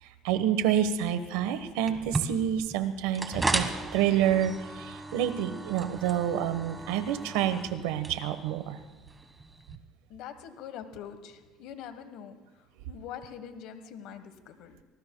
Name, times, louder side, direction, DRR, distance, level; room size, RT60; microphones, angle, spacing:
voice 1, 0.0-3.6 3.9-8.8, right 10 dB, 90° right, 10 dB, 1.2 m, -28 dB
sound 1, 1.9-9.8, right 2 dB, 15° right, 1.4 m, -36 dB
voice 2, 10.1-14.8, left 8 dB, 70° left, 9 dB, 1.3 m, -44 dB
26.0 x 19.0 x 2.3 m, 1.3 s
cardioid pair, 115°, 0 cm